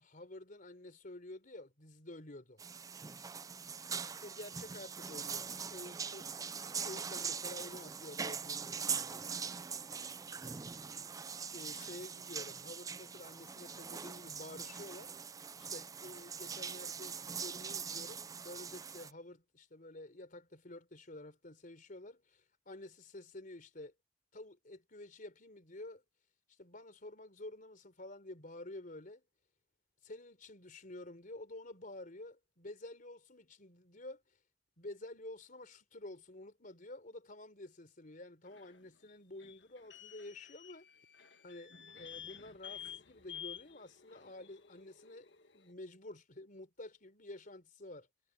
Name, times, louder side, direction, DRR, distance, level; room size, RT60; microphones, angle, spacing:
voice 1, 0.0-2.6 4.2-6.5 6.8-9.3 10.8-11.1 11.5-15.1 15.6-23.9 24.3-26.0 26.6-29.2 30.0-34.2 34.8-40.9 41.4-45.3 45.5-48.1, left 2 dB, 50° left, 4.1 m, -50 dB
sound 1, 2.6-19.1, right 6 dB, 20° right, 0.4 m, -42 dB
sound 2, 38.4-45.7, left 9 dB, 75° left, 1.8 m, -52 dB
head